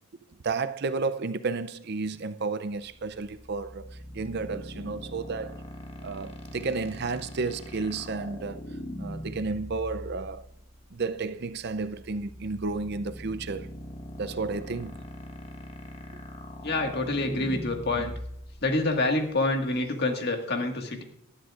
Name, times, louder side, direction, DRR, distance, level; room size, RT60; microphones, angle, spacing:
voice 1, 0.4-5.5 6.0-8.6 9.0-10.4 10.9-13.7 14.2-14.9, right 4 dB, 45° right, 0.5 m, -32 dB
sound 1, 2.7-19.9, equal, 25° left, 1.4 m, -42 dB
voice 2, 16.6-18.1 18.6-21.0, left 2 dB, 45° left, 1.8 m, -27 dB
19.0 x 12.0 x 2.5 m
head